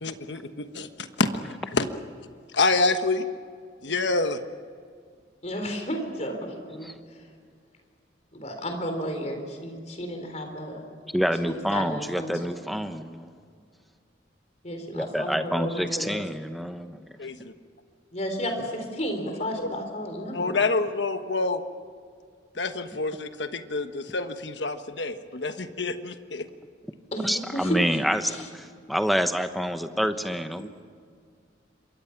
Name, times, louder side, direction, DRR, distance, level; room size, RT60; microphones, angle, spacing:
voice 1, 0.0-1.9 2.5-3.3 3.8-4.4 17.2-17.5 20.3-21.6 22.5-26.5, left 3 dB, 70° left, 8 dB, 1.3 m, -27 dB
voice 2, 5.4-6.9 8.3-10.8 11.4-12.4 14.6-16.1 18.1-20.4 27.1-27.8 28.2-28.5, equal, 40° left, 5 dB, 4.0 m, -32 dB
voice 3, 11.1-13.3 14.9-17.0 27.2-30.7, equal, ahead, 8 dB, 1.0 m, -27 dB
27.0 x 23.0 x 6.0 m, 2.1 s
head